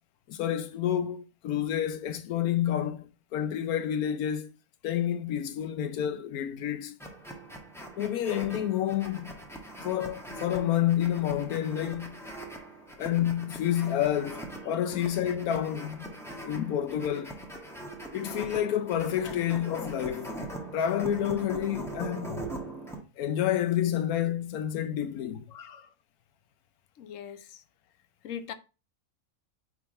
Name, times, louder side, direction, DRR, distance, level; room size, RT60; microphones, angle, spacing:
voice 1, 0.3-4.5 4.8-7.0 8.0-9.4 9.8-12.2 13.0-16.1 16.4-17.4 18.1-20.4 20.7-22.4 23.2-25.5, left 10 dB, 85° left, 1.2 m, -29 dB
sound 1, 7.0-23.0, right 1 dB, ahead, 1.3 m, -41 dB
voice 2, 25.5-25.9 27.0-27.6 28.2-28.5, left 8 dB, 65° left, 1.1 m, -42 dB
9.1 x 3.7 x 4.2 m
omnidirectional pair, 1.5 m